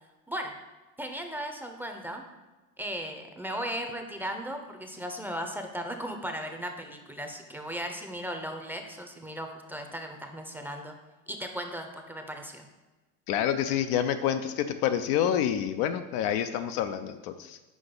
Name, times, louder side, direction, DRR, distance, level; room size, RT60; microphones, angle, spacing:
voice 1, 1.0-2.2 2.8-10.9 11.3-12.7, equal, 5° right, 4 dB, 0.7 m, -36 dB
voice 2, 13.3-17.6, left 9 dB, 55° left, 8 dB, 0.5 m, -28 dB
6.1 x 4.7 x 3.8 m, 1.2 s
hypercardioid pair, 75°, 44 cm